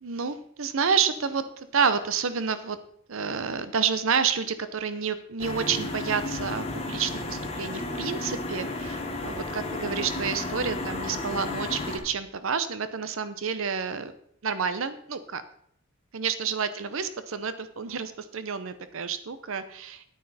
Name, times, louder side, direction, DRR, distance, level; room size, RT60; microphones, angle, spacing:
voice 1, 0.0-2.8 3.1-14.1 14.4-15.4 16.1-20.0, right 6 dB, 65° right, 12 dB, 0.7 m, -29 dB
sound 1, 5.4-12.0, left 2 dB, 30° left, 1.4 m, -33 dB
10.0 x 9.3 x 4.1 m, 0.68 s
head